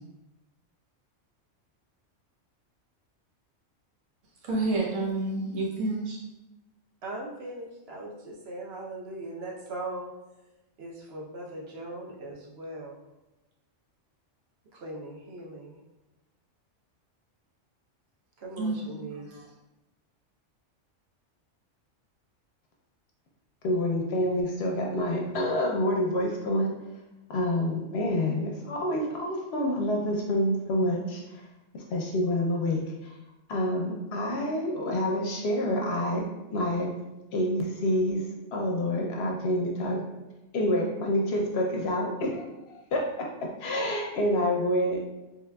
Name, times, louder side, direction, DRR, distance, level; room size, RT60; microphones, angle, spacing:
voice 1, 4.4-6.2 18.6-18.9, right 2 dB, 85° right, -3 dB, 1.2 m, -29 dB
voice 2, 7.0-10.1 10.8-13.0 14.7-15.8 18.4-19.4, right 2 dB, 60° right, -3 dB, 0.9 m, -39 dB
voice 3, 23.6-26.8 27.3-31.2 31.7-33.1 33.5-36.9 37.3-40.0 40.5-45.0, left 1 dB, 65° left, 0 dB, 0.8 m, -28 dB
3.8 x 2.9 x 2.2 m, 0.99 s
omnidirectional pair, 1.3 m